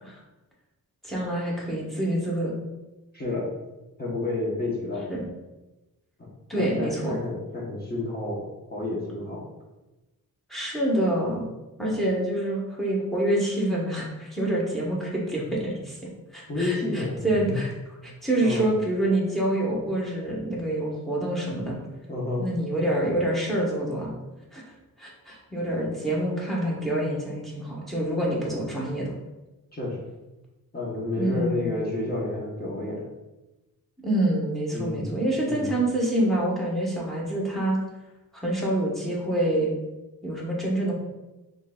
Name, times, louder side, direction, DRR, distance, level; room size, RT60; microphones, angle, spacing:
voice 1, 1.0-2.5 5.1-5.2 6.5-7.1 10.5-11.4 11.8-16.0 16.3-17.7 18.0-21.8 22.4-24.1 24.5-24.6 25.0-29.1 31.2-31.6 34.0-37.8 38.4-39.7 40.2-40.9, right 1 dB, ahead, -4 dB, 1.0 m, -26 dB
voice 2, 3.1-3.6 4.0-5.1 6.2-6.3 6.5-8.4 8.7-9.4 16.5-17.6 18.4-18.7 22.1-22.5 29.7-30.1 30.7-33.0 34.7-35.1 35.4-35.7, left 2 dB, 25° left, -5 dB, 0.9 m, -30 dB
3.7 x 3.7 x 2.3 m, 1.0 s
wide cardioid pair, 115°, 36 cm